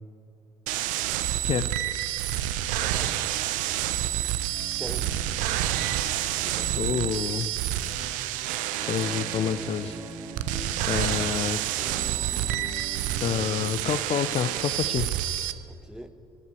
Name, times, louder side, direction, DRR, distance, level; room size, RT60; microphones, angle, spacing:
sound 1, 0.7-15.5, right 12 dB, 70° right, 0.6 m, -29 dB
voice 1, 1.4-1.8 6.8-7.5 8.9-10.0 10.9-11.6 13.2-15.1, left 8 dB, 50° left, 13 dB, 0.5 m, -28 dB
voice 2, 2.8-3.4 4.8-5.2 6.4-7.0 8.0-8.2 13.0-13.1 15.7-16.1, equal, 5° right, 11 dB, 1.0 m, -42 dB
sound 2, 3.0-13.7, right 2 dB, 25° right, 1.4 m, -44 dB
11.0 x 9.5 x 9.3 m, 2.5 s
hypercardioid pair, 55°, 14 cm